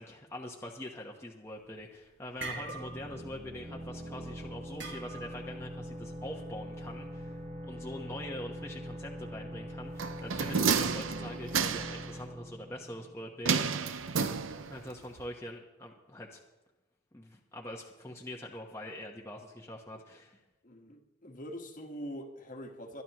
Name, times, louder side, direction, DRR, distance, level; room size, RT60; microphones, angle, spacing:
voice 1, 0.0-13.7 14.7-16.4 17.1-20.4, left 1 dB, 15° left, -1 dB, 1.0 m, -44 dB
sound 1, 1.5-1.8 2.1-3.2 3.5-3.8 4.8-5.5, right 4 dB, 65° right, 2.2 m, -42 dB
sound 2, 2.4-13.9, equal, 35° right, 1.7 m, -43 dB
sound 3, 10.0-12.1 13.5-14.9 15.2-15.3, right 6 dB, 90° right, 0.7 m, -30 dB
voice 2, 20.6-23.0, equal, 45° left, 4 dB, 1.4 m, -44 dB
23.0 x 11.0 x 3.0 m, 1.1 s
head